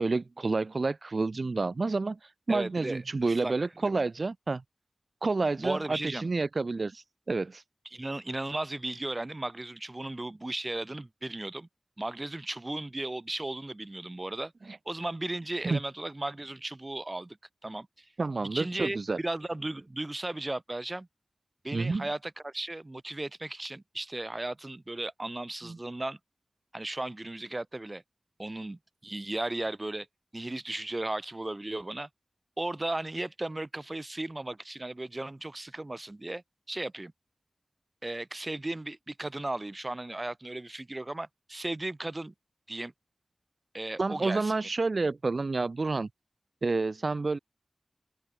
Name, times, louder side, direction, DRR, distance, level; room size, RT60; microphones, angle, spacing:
voice 1, 0.0-2.2 2.5-4.6 5.2-7.6 15.6-15.8 18.2-19.2 21.7-22.1 25.6-25.8 44.0-46.1 46.6-47.4, right 3 dB, 65° right, 0.8 m, -29 dB
voice 2, 2.5-4.0 5.6-6.3 7.9-11.7 12.0-14.5 14.9-17.4 17.6-18.1 18.5-21.1 21.6-26.2 26.7-28.0 28.4-30.1 30.3-32.1 32.6-37.1 38.0-42.3 42.7-42.9 43.7-44.5, right 2 dB, 30° right, 0.5 m, -36 dB
open air
wide cardioid pair, 75°, 0 cm